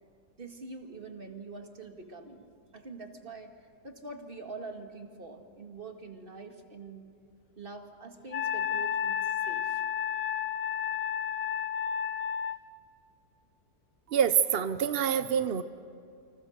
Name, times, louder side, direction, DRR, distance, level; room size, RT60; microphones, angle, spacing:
voice 1, 0.4-2.5 2.7-3.5 3.8-7.0 7.6-9.8, right 3 dB, 30° right, 4 dB, 2.2 m, -44 dB
Wind instrument woodwind instrument, 8.3-12.6, left 8 dB, 55° left, 1.1 m, -31 dB
voice 2, 14.1-15.6, right 8 dB, 60° right, 11 dB, 0.6 m, -26 dB
29.0 x 26.0 x 6.5 m, 2.4 s
omnidirectional pair, 1.9 m